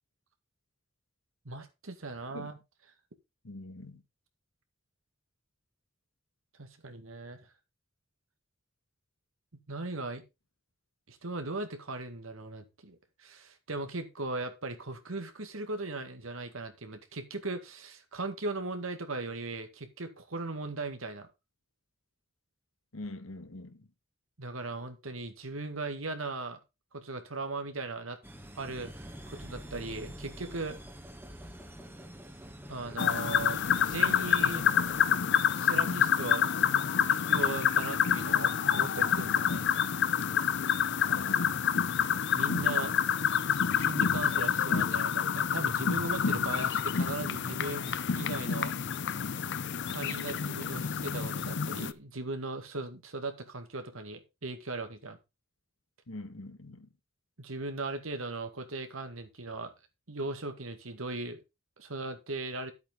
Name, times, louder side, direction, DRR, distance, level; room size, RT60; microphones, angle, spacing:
voice 1, 1.5-2.6 6.6-7.5 9.7-10.2 11.1-21.3 24.4-26.6 26.9-28.2 28.6-30.8 32.7-34.7 35.5-36.5 37.1-39.6 42.3-42.9 43.7-48.9 49.9-55.2 57.4-59.7 60.1-61.4 61.8-62.7, right 3 dB, 90° right, 1.9 m, -38 dB
voice 2, 3.4-4.0 22.9-23.9 41.0-41.6 56.1-56.9, left 2 dB, 85° left, 1.5 m, -44 dB
sound 1, 28.2-35.2, equal, 10° right, 1.2 m, -47 dB
sound 2, 33.0-51.9, left 8 dB, 60° left, 0.6 m, -28 dB
11.0 x 8.2 x 3.8 m
head